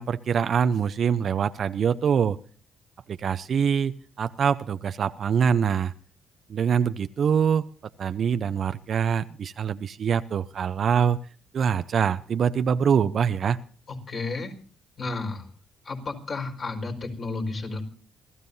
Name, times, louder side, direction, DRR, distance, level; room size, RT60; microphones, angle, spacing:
voice 1, 0.0-2.4 3.1-3.9 4.2-5.9 6.5-7.7 8.0-11.2 11.5-13.6, right 7 dB, 55° right, 11 dB, 0.6 m, -24 dB
voice 2, 13.9-14.5 15.0-15.5 15.8-17.8, left 3 dB, 50° left, 3 dB, 4.6 m, -32 dB
28.0 x 14.0 x 2.7 m, 0.40 s
cardioid pair, 90°, 0 cm